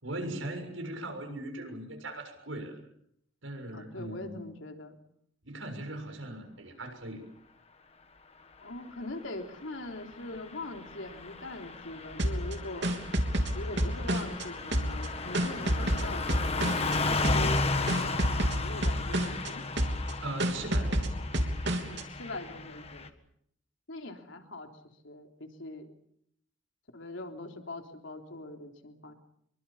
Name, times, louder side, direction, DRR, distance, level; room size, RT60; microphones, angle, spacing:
voice 1, 0.0-2.8 3.4-4.4 5.4-7.2 20.2-21.3, right 1 dB, 80° right, 5 dB, 6.7 m, -39 dB
voice 2, 3.7-5.0 8.6-13.0 13.5-16.8 17.2-19.6 21.9-23.1 23.9-24.7 25.0-25.9 26.9-29.1, left 2 dB, 75° left, 4 dB, 3.6 m, -42 dB
Car passing by / Truck, 10.1-23.1, left 3 dB, 30° left, 1.7 m, -34 dB
sound 1, 12.2-14.4 14.7-17.0 17.2-17.6 17.9-19.5 19.8-20.1 20.4-22.0, right 1 dB, 60° right, 3.3 m, -29 dB
26.0 x 23.5 x 7.2 m, 0.72 s
head